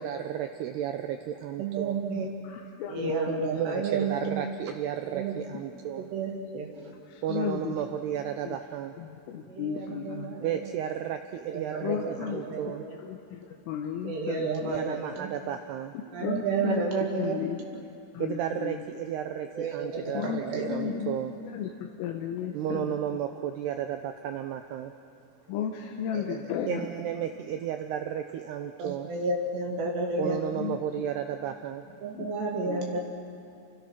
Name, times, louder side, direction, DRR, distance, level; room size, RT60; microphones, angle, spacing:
voice 1, 0.0-2.0 3.5-6.1 7.2-9.0 10.4-12.9 14.5-16.0 18.2-21.3 22.5-24.9 26.7-29.1 30.2-31.9, right 10 dB, 85° right, 7 dB, 2.3 m, -33 dB
voice 2, 1.6-2.3 2.9-4.5 5.1-5.3 6.0-6.7 9.5-10.6 11.5-12.2 12.4-12.6 14.0-15.3 16.1-17.4 19.6-20.8 25.5-25.6 26.1-26.5 28.8-30.4 32.0-33.0, right 4 dB, 65° right, 0 dB, 3.9 m, -31 dB
voice 3, 2.1-3.4 7.1-7.8 8.5-8.6 9.0-10.4 11.8-12.4 13.1-13.4 13.7-14.8 16.2-16.8 17.2-17.8 18.1-18.8 20.1-21.2 21.5-21.7 22.0-22.9 25.5-26.8 29.7-29.8 30.2-30.8 32.1-32.3 32.7-32.9, left 8 dB, 85° left, 1 dB, 3.8 m, -34 dB
29.5 x 25.0 x 6.1 m, 2.6 s
omnidirectional pair, 5.7 m